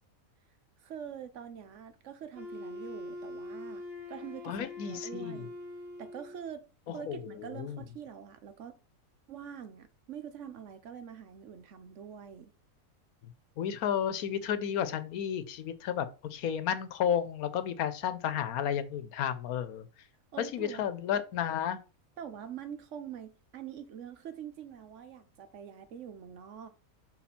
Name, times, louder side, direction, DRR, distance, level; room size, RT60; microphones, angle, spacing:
voice 1, 0.8-3.8 4.1-5.5 6.0-6.7 6.9-8.8 9.3-12.5 20.3-20.9 22.2-26.7, right 8 dB, 65° right, 1.0 m, -45 dB
Wind instrument woodwind instrument, 2.3-6.5, left 2 dB, 25° right, 1.2 m, -43 dB
voice 2, 4.5-5.5 6.9-7.8 13.6-19.9 20.5-21.8, left 9 dB, 90° left, 1.2 m, -32 dB
5.8 x 4.3 x 4.2 m
omnidirectional pair, 1.5 m